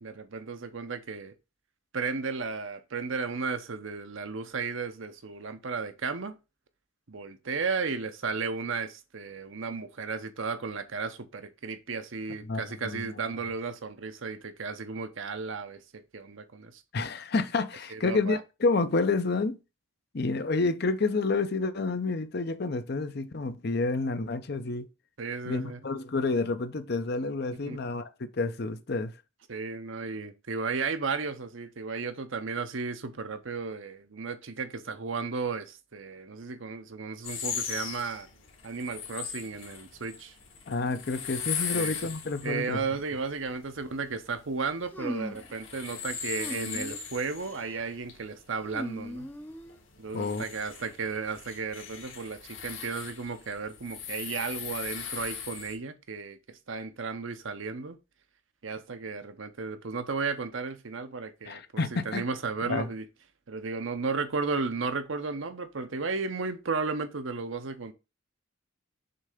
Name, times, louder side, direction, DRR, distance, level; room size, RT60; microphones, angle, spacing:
voice 1, 0.0-1.3 1.9-6.4 7.1-16.7 17.9-18.4 25.2-25.8 27.5-27.8 29.5-38.3 38.6-40.3 41.7-41.9 42.4-49.3 50.0-58.0 58.6-63.0 63.5-67.9, right 4 dB, 70° right, 0.8 m, -34 dB
voice 2, 12.4-13.1 16.9-19.6 20.1-24.9 25.5-29.1 40.7-42.8 50.1-50.4 61.4-62.2 62.6-62.9, left 3 dB, 50° left, 0.6 m, -29 dB
sound 1, 37.2-55.7, left 7 dB, 70° left, 2.1 m, -39 dB
sound 2, 44.9-45.5 46.4-47.0 47.4-47.8 48.6-49.8, left 1 dB, 10° left, 0.6 m, -39 dB
6.8 x 3.4 x 5.0 m
head